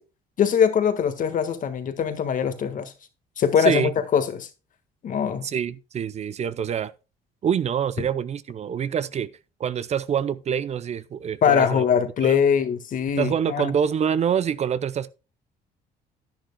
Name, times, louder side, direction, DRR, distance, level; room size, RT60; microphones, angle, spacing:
voice 1, 0.4-2.9 3.4-4.5 5.0-5.5 11.4-13.7, left 7 dB, 50° left, 1.6 m, -22 dB
voice 2, 3.6-3.9 5.4-6.9 7.4-9.3 9.6-11.8 12.2-12.4 13.2-15.1, right 8 dB, 40° right, 0.6 m, -26 dB
10.5 x 10.5 x 2.2 m
cardioid pair, 110°, 17 cm